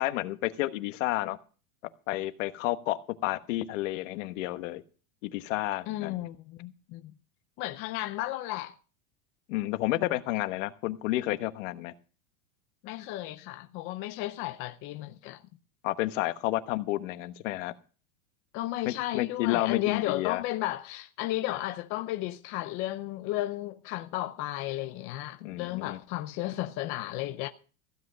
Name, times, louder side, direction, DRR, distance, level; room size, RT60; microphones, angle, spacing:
voice 1, 0.0-1.4 2.1-4.8 5.2-6.1 9.5-11.9 15.8-17.7 18.8-20.4 21.5-21.6 25.4-26.0, left 17 dB, 60° left, 1.2 m, -31 dB
voice 2, 5.9-7.1 7.6-8.8 12.8-15.4 18.5-27.5, left 16 dB, 30° left, 0.5 m, -34 dB
15.5 x 7.7 x 6.4 m
supercardioid pair, 160°, 43 cm